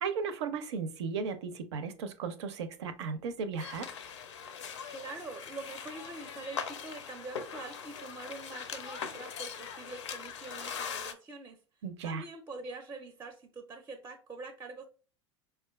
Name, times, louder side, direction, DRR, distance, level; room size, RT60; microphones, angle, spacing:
voice 1, 0.0-3.9 11.8-12.2, right 5 dB, 70° right, 0.5 m, -35 dB
sound 1, 3.6-11.1, left 7 dB, 80° left, 0.4 m, -41 dB
voice 2, 4.9-11.6 12.0-14.9, right 3 dB, 15° right, 0.4 m, -45 dB
4.2 x 2.2 x 2.2 m
hypercardioid pair, 75°, 15 cm